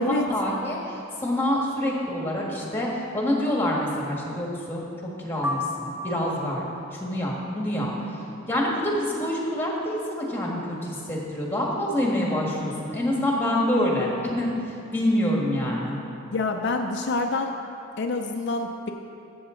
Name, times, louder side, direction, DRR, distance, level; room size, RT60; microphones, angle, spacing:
voice 1, 0.0-7.9 8.5-14.1 14.4-14.5 14.9-16.0, left 1 dB, 10° left, -2 dB, 1.5 m, -26 dB
sound 1, 5.4-6.7, left 2 dB, 15° right, 0.5 m, -32 dB
voice 2, 16.3-17.5 18.0-18.9, left 3 dB, 60° left, 3 dB, 0.5 m, -26 dB
13.0 x 7.8 x 3.8 m, 2.8 s
head